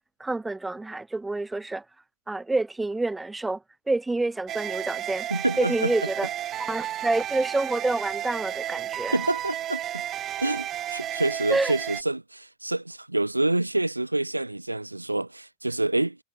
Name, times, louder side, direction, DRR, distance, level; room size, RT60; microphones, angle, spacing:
voice 1, 0.2-1.8 2.3-3.6 3.9-5.3 5.6-6.3 6.7-9.2 11.5-11.7, right 2 dB, 10° right, 1.9 m, -27 dB
sound 1, 4.5-12.0, right 12 dB, 30° right, 4.2 m, -33 dB
voice 2, 5.3-5.9 9.1-10.1 10.4-16.2, right 2 dB, 85° right, 2.2 m, -27 dB
figure-of-eight pair, 90°, 0 cm